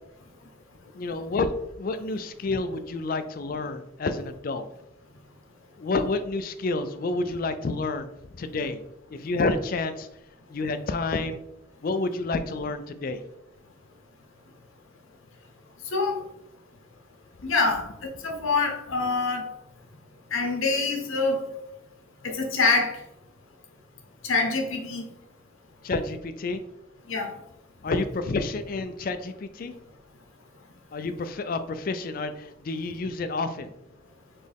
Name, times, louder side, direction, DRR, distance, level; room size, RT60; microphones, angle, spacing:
voice 1, 0.9-1.5 1.8-4.6 5.8-8.1 8.4-8.8 9.1-10.1 10.5-11.4 11.8-13.2 25.8-26.6 27.8-29.7 30.9-33.7, left 3 dB, 45° left, 10 dB, 0.3 m, -29 dB
voice 2, 17.4-19.5 20.3-21.4 22.2-23.0 24.2-25.0 27.1-27.4, left 3 dB, 75° left, 2 dB, 0.9 m, -25 dB
4.3 x 3.1 x 3.4 m, 0.85 s
head